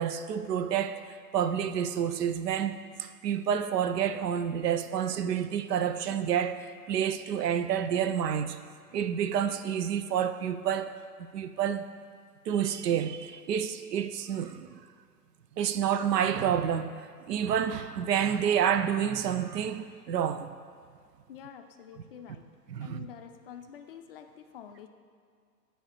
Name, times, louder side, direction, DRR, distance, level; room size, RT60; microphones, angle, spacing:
voice 1, 0.0-8.6 8.9-10.9 11.2-11.9 12.5-14.8 15.6-20.5 22.7-23.1, right 8 dB, 75° right, 0.6 m, -29 dB
voice 2, 21.3-22.4 22.8-24.9, left 9 dB, 40° left, 0.4 m, -47 dB
8.9 x 3.4 x 4.3 m
figure-of-eight pair, 110°, 49 cm